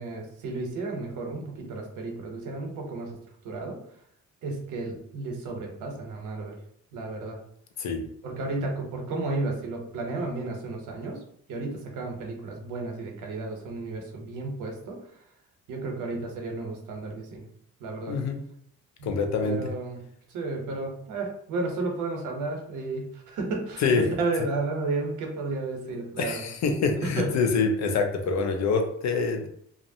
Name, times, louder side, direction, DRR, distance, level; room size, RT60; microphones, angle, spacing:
voice 1, 0.0-3.1 3.4-3.8 4.4-6.6 6.9-7.4 8.2-11.2 11.5-15.0 15.7-17.4 17.8-18.1 19.0-19.2 19.4-20.0 20.3-26.4 27.0-27.3, right 3 dB, 85° right, 1 dB, 0.8 m, -32 dB
voice 2, 18.1-18.4 19.0-19.7 23.8-24.0 26.2-29.5, left 4 dB, 65° left, 5 dB, 0.6 m, -25 dB
2.5 x 2.0 x 2.6 m, 0.68 s
cardioid pair, 90°, 30 cm